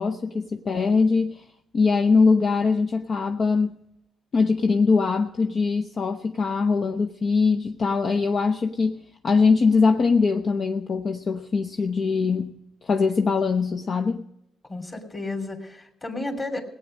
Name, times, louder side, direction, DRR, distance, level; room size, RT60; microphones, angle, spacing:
voice 1, 0.0-1.5 1.7-3.8 4.3-12.5 12.8-14.3, left 4 dB, 50° left, 5 dB, 0.8 m, -22 dB
voice 2, 14.7-16.6, left 2 dB, 25° left, 4 dB, 2.8 m, -32 dB
18.0 x 8.7 x 6.4 m, 0.83 s
cardioid pair, 90°, 0 cm